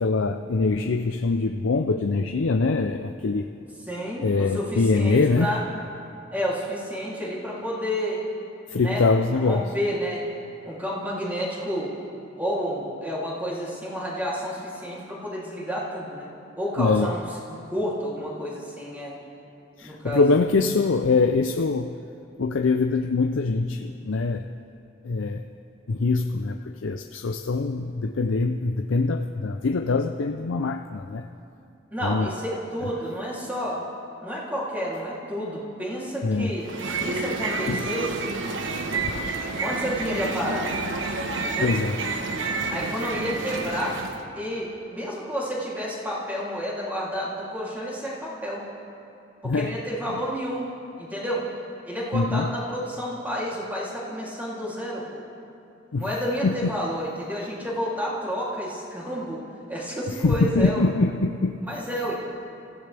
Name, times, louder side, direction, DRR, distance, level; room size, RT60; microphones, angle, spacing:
voice 1, 0.0-3.6 4.2-5.5 8.7-9.6 16.8-17.1 19.8-21.9 22.4-24.4 25.0-25.4 25.9-31.2 32.0-32.3 36.2-36.5 37.1-37.2 37.7-37.8 41.6-41.9 49.4-49.7 52.1-52.5 55.9-56.1 56.4-56.7 60.2-61.6, left 3 dB, 80° left, 6 dB, 0.5 m, -23 dB
voice 2, 3.9-5.6 6.3-8.2 8.7-9.1 9.3-10.2 10.6-11.9 12.4-16.3 16.6-19.1 19.8-20.2 31.9-33.8 34.2-36.7 37.0-38.3 39.6-40.7 41.4-41.7 42.7-44.0 44.3-48.6 49.4-50.7 51.0-51.5 51.8-55.2 55.9-59.4 59.7-60.9 61.6-62.2, equal, 10° right, -6 dB, 3.1 m, -30 dB
sound 1, 36.6-44.2, right 3 dB, 75° right, 1.2 m, -29 dB
27.0 x 15.5 x 3.4 m, 2.7 s
head